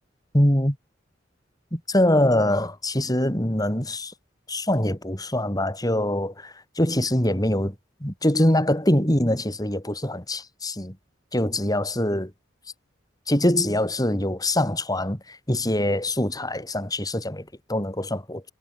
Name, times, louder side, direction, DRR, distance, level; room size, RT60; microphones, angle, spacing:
voice 1, 0.3-0.8 1.7-4.1 4.5-7.7 8.0-11.0 11.3-12.3 13.3-18.4, left 1 dB, 20° left, 5.8 m, -23 dB
head